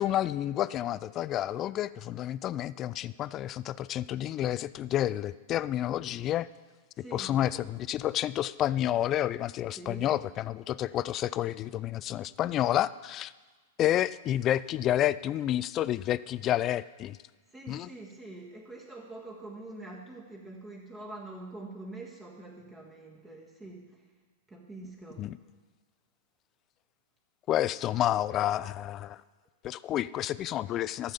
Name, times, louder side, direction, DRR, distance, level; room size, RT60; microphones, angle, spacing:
voice 1, 0.0-6.5 7.1-13.3 13.8-17.2 17.7-17.9 25.2-25.4 27.5-29.2 29.6-31.1, left 12 dB, 35° left, 18 dB, 0.3 m, -30 dB
voice 2, 7.0-7.4 9.8-10.1 12.4-12.5 17.5-24.1 24.5-25.3, right 2 dB, 15° right, -2 dB, 1.7 m, -45 dB
13.5 x 7.3 x 5.2 m, 1.3 s
figure-of-eight pair, 100°, 0 cm